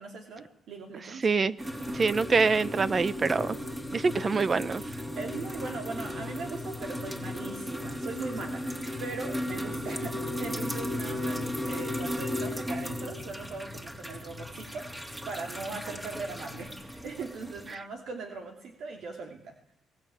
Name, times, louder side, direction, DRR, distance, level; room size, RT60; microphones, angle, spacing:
voice 1, 0.0-1.3 5.1-19.5, right 4 dB, 75° right, 3 dB, 3.0 m, -40 dB
voice 2, 1.2-1.6 1.9-3.6 3.9-4.8, right 4 dB, 35° right, 17 dB, 1.0 m, -25 dB
sound 1, 1.6-17.7, left 1 dB, 15° right, 3.2 m, -35 dB
23.0 x 16.5 x 9.2 m, 0.77 s
cardioid pair, 90°, 0 cm